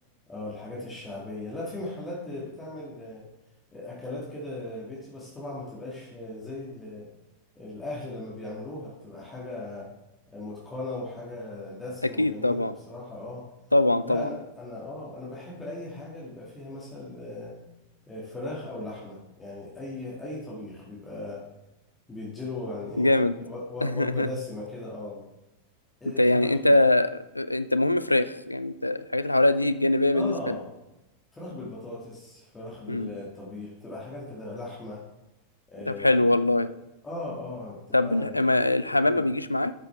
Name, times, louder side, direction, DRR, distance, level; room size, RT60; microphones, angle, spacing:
voice 1, 0.3-3.3 3.7-7.1 7.6-9.9 10.3-13.5 14.0-17.6 18.1-21.4 22.1-25.2 26.0-26.8 30.1-30.7 31.3-35.0 35.7-36.4 37.0-39.2, left 2 dB, 10° left, -5 dB, 2.3 m, -38 dB
voice 2, 12.2-12.8 13.7-14.3 23.0-23.4 23.8-24.3 26.2-27.1 27.3-30.5 32.9-33.1 35.9-36.7 37.9-39.7, left 2 dB, 85° left, 13 dB, 0.4 m, -23 dB
12.0 x 6.6 x 3.5 m, 0.95 s
figure-of-eight pair, 90°, 0 cm